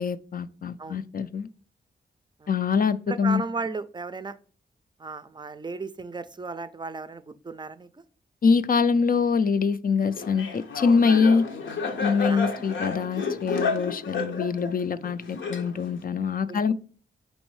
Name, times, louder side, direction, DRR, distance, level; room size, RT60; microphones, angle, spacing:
voice 1, 0.0-1.5 2.5-3.4 8.4-11.5 12.0-16.7, left 5 dB, 50° left, 0.4 m, -24 dB
voice 2, 3.1-4.3 5.0-8.0 12.3-12.4 16.5-16.7, right 4 dB, 25° right, 0.4 m, -35 dB
Laughter, 10.2-16.0, left 4 dB, 80° left, 0.7 m, -31 dB
5.3 x 3.1 x 3.1 m
cardioid pair, 65°, 19 cm